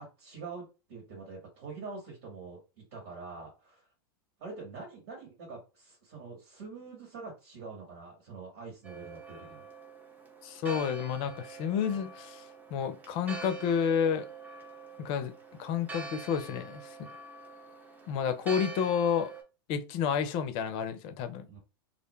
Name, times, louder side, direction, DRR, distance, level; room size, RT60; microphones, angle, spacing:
voice 1, 0.0-3.9 4.4-9.7 21.4-21.6, right 4 dB, 65° right, 1.4 m, -45 dB
Church bell, 8.8-19.4, right 4 dB, 15° right, 0.8 m, -45 dB
voice 2, 10.4-12.4 12.7-14.3 15.0-15.3 15.6-17.1 18.1-19.3 19.7-21.5, left 7 dB, 45° left, 0.5 m, -30 dB
2.5 x 2.1 x 3.1 m
hypercardioid pair, 100°, 12 cm